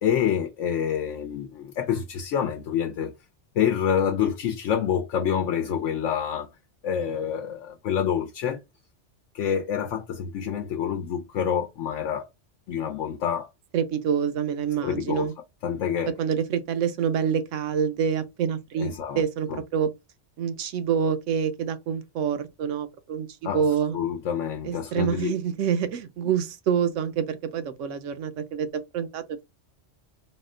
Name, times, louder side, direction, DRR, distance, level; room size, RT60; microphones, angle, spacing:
voice 1, 0.0-3.1 3.5-6.5 6.8-8.6 9.3-12.3 12.7-13.5 14.8-15.3 15.6-16.1 18.8-19.2 19.5-19.6 23.4-23.6 23.9-25.3, left 8 dB, 80° left, 1.0 m, -27 dB
voice 2, 13.7-15.3 16.2-19.9 20.4-23.3 23.5-24.0 24.6-29.2, right 7 dB, 85° right, 1.0 m, -27 dB
4.1 x 2.1 x 3.7 m
omnidirectional pair, 1.2 m